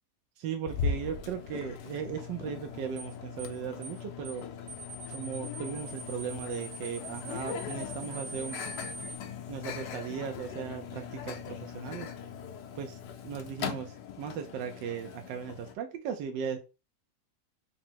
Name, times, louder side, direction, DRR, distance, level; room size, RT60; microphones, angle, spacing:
voice 1, 0.4-4.5 5.1-8.6 9.5-12.1 12.7-16.6, right 7 dB, 80° right, 5 dB, 1.2 m, -37 dB
Microwave oven, 0.7-15.7, left 6 dB, 75° left, 1.2 m, -39 dB
sound 1, 3.0-3.1 3.4-3.6 3.8-4.0 4.2-4.4 4.7-9.2, right 3 dB, 55° right, 1.5 m, -43 dB
3.9 x 2.1 x 4.4 m, 0.30 s
omnidirectional pair, 1.9 m